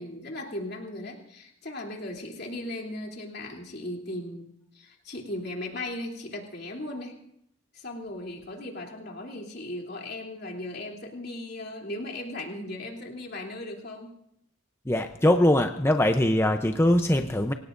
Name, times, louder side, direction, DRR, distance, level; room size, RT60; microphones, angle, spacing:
voice 1, 0.0-7.2 7.7-14.1, left 1 dB, 50° left, 0 dB, 3.1 m, -37 dB
voice 2, 14.9-17.5, left 1 dB, 10° left, 6 dB, 0.6 m, -22 dB
27.0 x 17.5 x 2.6 m, 0.75 s
head